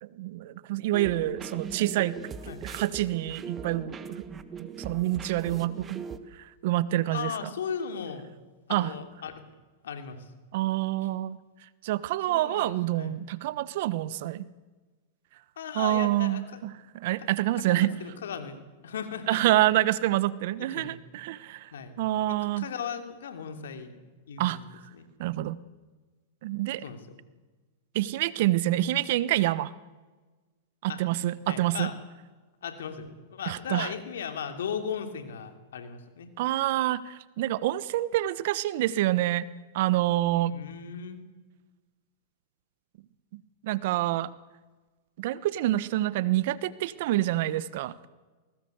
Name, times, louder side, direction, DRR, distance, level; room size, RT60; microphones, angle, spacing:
voice 1, 0.0-4.2 4.6-7.5 8.7-8.9 10.5-11.4 11.8-14.5 15.7-17.9 19.3-21.7 22.0-22.7 24.4-24.6 25.2-25.6 26.4-26.8 27.9-29.7 30.8-31.9 33.5-33.9 36.4-39.5 39.7-40.6 43.3-44.3 45.2-48.0, right 15 dB, 60° right, 18 dB, 1.1 m, -27 dB
sound 1, 0.9-6.2, right 6 dB, 25° right, 1.5 m, -40 dB
voice 2, 7.1-8.3 8.7-9.4 9.8-10.3 12.3-13.2 15.6-16.6 17.7-19.6 20.6-20.9 21.7-21.9 22.3-24.0 24.3-24.6 24.9-25.1 26.8-27.0 30.9-31.0 31.5-32.0 32.6-36.3 40.5-41.2, left 7 dB, 80° left, 7 dB, 3.0 m, -37 dB
21.0 x 18.5 x 8.1 m, 1.3 s
hypercardioid pair, 115°, 0 cm